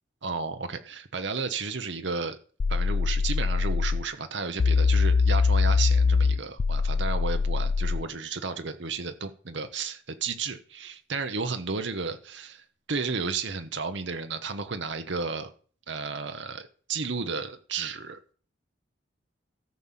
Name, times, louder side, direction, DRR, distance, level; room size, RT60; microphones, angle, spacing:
voice 1, 0.2-2.4 2.7-15.5 15.9-18.2, right 4 dB, 65° right, 8 dB, 1.0 m, -33 dB
sound 1, 2.6-4.1 4.6-8.1, left 4 dB, 60° left, 0.5 m, -23 dB
13.5 x 5.5 x 7.5 m, 0.42 s
head